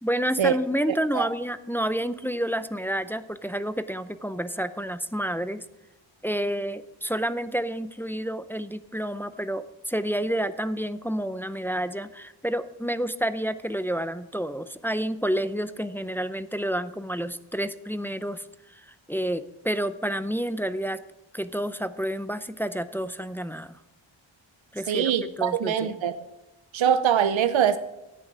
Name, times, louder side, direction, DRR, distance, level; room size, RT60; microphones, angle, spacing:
voice 1, 0.0-5.6 6.2-21.0 21.3-23.8 24.7-25.1 25.4-25.9, equal, 5° left, 0.6 m, -29 dB
voice 2, 0.9-1.3 24.9-26.1 26.7-27.8, right 9 dB, 75° right, 0.7 m, -23 dB
13.5 x 9.3 x 6.2 m
wide cardioid pair, 70°, 47 cm